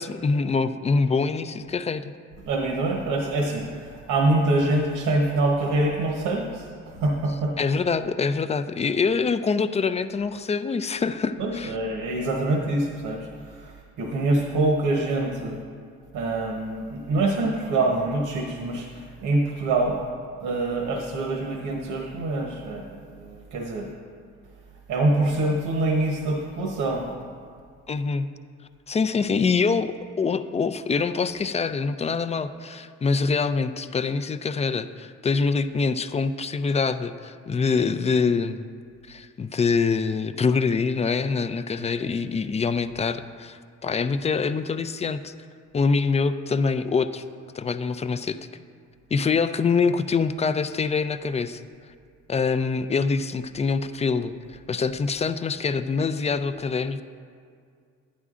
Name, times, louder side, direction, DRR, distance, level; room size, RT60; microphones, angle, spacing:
voice 1, 0.0-2.1 7.6-11.7 27.9-28.3 28.9-38.7 39.1-45.3 45.7-47.2 47.5-48.4 49.1-51.6 52.3-54.3 54.7-57.0, left 5 dB, 20° left, 10 dB, 0.3 m, -25 dB
voice 2, 2.5-7.5 11.4-15.6 16.1-20.0 20.4-23.9 24.9-27.1, right 2 dB, 85° right, 0 dB, 1.0 m, -25 dB
11.5 x 9.5 x 2.5 m, 2.2 s
cardioid pair, 90°, 30 cm